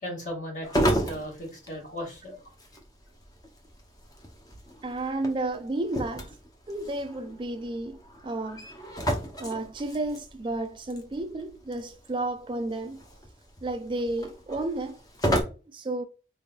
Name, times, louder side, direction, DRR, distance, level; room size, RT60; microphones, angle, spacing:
voice 1, 0.0-2.4, equal, 45° left, 2.0 m, -36 dB
sound 1, 0.6-15.4, equal, 20° left, 0.8 m, -34 dB
voice 2, 4.8-6.3 6.7-8.7 9.4-13.0 13.6-15.0 15.7-16.0, right 2 dB, 25° right, 0.3 m, -32 dB
4.0 x 3.7 x 2.3 m
head